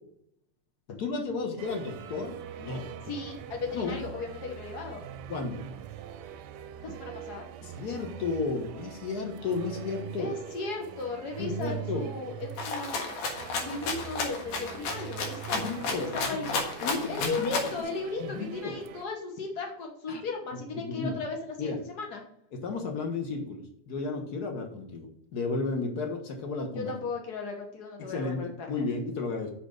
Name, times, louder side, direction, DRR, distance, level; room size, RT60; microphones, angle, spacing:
voice 1, 1.0-2.9 3.7-4.0 5.3-5.6 7.6-10.3 11.4-12.0 15.5-16.1 16.8-17.5 18.2-18.7 20.1-20.2 20.5-21.1 21.6-21.8 22.5-26.9 28.0-29.5, left 4 dB, 50° left, 3 dB, 1.1 m, -33 dB
sound 1, 1.6-19.1, right 11 dB, 75° right, 1.8 m, -42 dB
voice 2, 3.1-5.0 6.8-7.5 10.2-13.1 13.6-16.5 17.1-22.2 26.7-28.7, left 3 dB, 75° left, 2 dB, 0.9 m, -36 dB
Rattle (instrument), 12.6-17.8, left 4 dB, 90° left, 3.2 m, -32 dB
6.7 x 6.0 x 6.5 m, 0.75 s
omnidirectional pair, 3.6 m